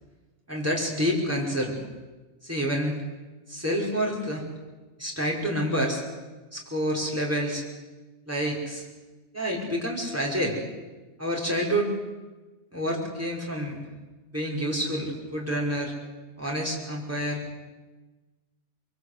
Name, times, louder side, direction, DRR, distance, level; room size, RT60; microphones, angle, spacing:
voice 1, 0.5-1.7 2.4-2.9 3.5-4.5 5.0-6.0 6.5-7.6 8.3-8.9 9.3-10.6 11.2-11.9 12.7-13.8 14.3-15.9 16.4-17.4, equal, 10° right, -3 dB, 5.4 m, -28 dB
24.0 x 22.5 x 8.3 m, 1.2 s
omnidirectional pair, 1.2 m